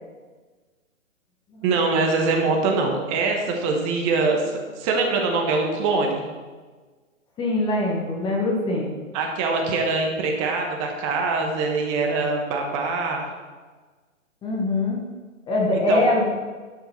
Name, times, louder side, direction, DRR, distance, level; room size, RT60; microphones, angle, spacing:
voice 1, 1.6-6.2 9.1-13.3 15.9-16.1, right 3 dB, 25° right, 1 dB, 1.2 m, -23 dB
voice 2, 7.4-8.9 14.4-15.0 15.5-16.2, left 2 dB, 10° left, -1 dB, 1.1 m, -23 dB
12.5 x 5.7 x 4.5 m, 1.4 s
hypercardioid pair, 135°, 40 cm